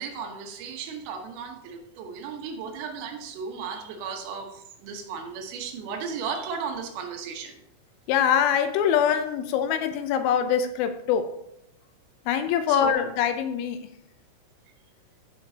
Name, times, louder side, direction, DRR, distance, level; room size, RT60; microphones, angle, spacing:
voice 1, 0.0-7.6 12.7-13.0, right 6 dB, 90° right, 3.8 m, -35 dB
voice 2, 8.1-11.3 12.3-13.8, left 8 dB, 80° left, 2.9 m, -23 dB
15.0 x 5.8 x 2.8 m
omnidirectional pair, 5.7 m